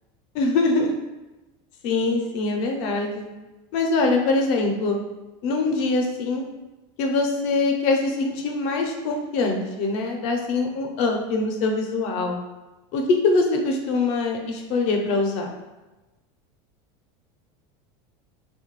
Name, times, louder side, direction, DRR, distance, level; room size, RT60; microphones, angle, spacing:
voice 1, 0.3-0.9 1.8-3.3 3.7-5.0 5.4-6.5 7.0-12.4 12.9-15.5, left 3 dB, 50° left, 2 dB, 0.5 m, -23 dB
3.1 x 2.2 x 3.0 m, 1.1 s
supercardioid pair, 165°, 15 cm